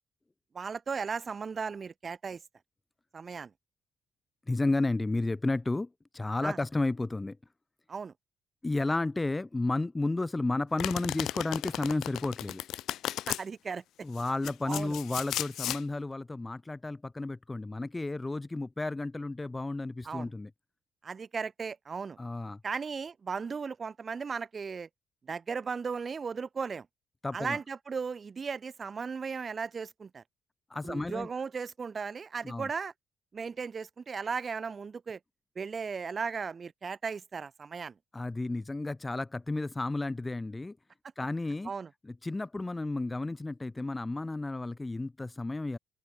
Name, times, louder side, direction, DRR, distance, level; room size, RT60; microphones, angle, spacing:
voice 1, 0.5-2.4 3.1-3.5 6.4-6.6 7.9-8.1 13.3-13.8 14.7-14.9 20.0-20.3 21.0-22.2 22.6-24.9 25.3-26.8 27.3-30.2 30.8-32.9 33.3-35.2 35.6-37.9 41.6-41.9, right 5 dB, 40° right, 1.2 m, -36 dB
voice 2, 4.5-5.9 6.1-7.4 8.6-12.6 14.0-20.5 22.2-22.6 27.2-27.6 30.7-31.3 32.4-32.7 38.1-40.8 41.2-41.7 42.0-45.8, left 2 dB, 20° left, 0.3 m, -32 dB
Domestic sounds home sounds, 10.8-13.4 14.2-15.8, left 13 dB, 80° left, 1.0 m, -35 dB
open air
cardioid pair, 90°, 0 cm